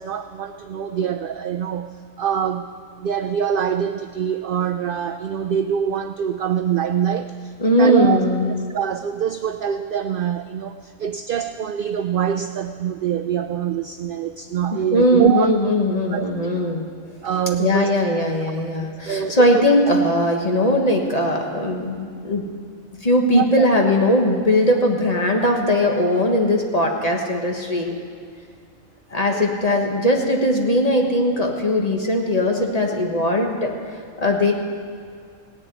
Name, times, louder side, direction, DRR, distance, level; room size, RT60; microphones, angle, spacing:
voice 1, 0.0-2.7 3.0-8.2 8.7-15.5 16.1-16.2 17.2-17.9 18.8-19.6 23.3-23.4 29.7-29.9, right 8 dB, 70° right, 8 dB, 0.5 m, -24 dB
voice 2, 7.6-8.5 14.7-16.9 17.6-22.5 23.0-28.0 29.1-33.7 34.2-34.5, left 1 dB, 30° left, 1 dB, 1.5 m, -19 dB
17.5 x 7.1 x 9.3 m, 2.2 s
omnidirectional pair, 1.4 m